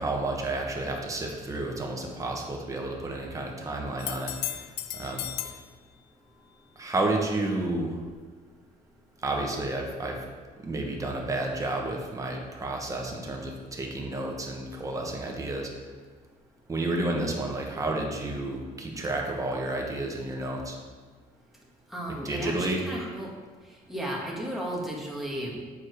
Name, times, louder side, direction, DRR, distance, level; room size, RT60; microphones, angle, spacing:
voice 1, 0.0-5.5 6.8-8.0 9.2-10.2 10.6-15.7 16.7-20.8 22.2-22.8, right 2 dB, 20° right, 0 dB, 1.3 m, -31 dB
sound 1, 4.0-5.6 9.3-9.4, left 12 dB, 75° left, 0.5 m, -35 dB
voice 2, 21.9-23.3 23.9-25.6, equal, ahead, -3 dB, 1.6 m, -34 dB
7.2 x 4.9 x 4.7 m, 1.5 s
cardioid pair, 110°, 17 cm